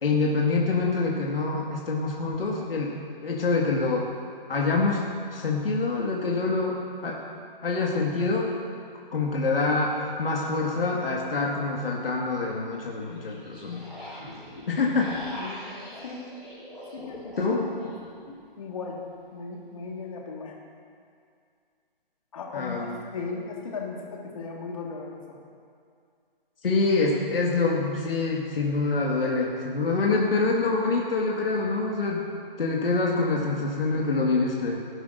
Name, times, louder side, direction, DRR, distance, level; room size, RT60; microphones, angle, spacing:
voice 1, 0.0-2.9 3.2-4.1 4.5-5.0 5.3-7.2 7.6-8.5 9.1-13.8 14.7-15.1 17.4-17.7 22.5-23.0 26.6-32.3 32.6-34.8, left 3 dB, 75° left, -2 dB, 1.8 m, -26 dB
sound 1, 10.0-10.1 12.9-18.4, left 1 dB, ahead, 0.6 m, -42 dB
voice 2, 16.9-17.5 18.6-19.0 19.3-20.5 22.3-25.2, left 4 dB, 35° left, -1 dB, 1.6 m, -36 dB
17.0 x 11.0 x 2.6 m, 2.3 s
hypercardioid pair, 170°, 29 cm